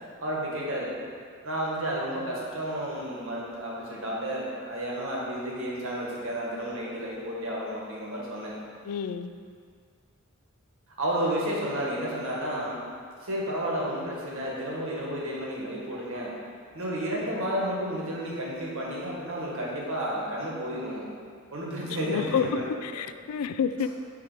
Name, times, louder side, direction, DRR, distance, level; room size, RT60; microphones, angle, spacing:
voice 1, 0.2-0.9 1.4-8.5 11.0-12.8 13.2-16.3 16.7-21.1 21.5-22.6, equal, 65° right, -4 dB, 1.7 m, -31 dB
voice 2, 8.8-9.3 21.9-23.9, left 7 dB, 75° left, 11 dB, 0.3 m, -29 dB
9.2 x 3.5 x 5.0 m, 2.1 s
head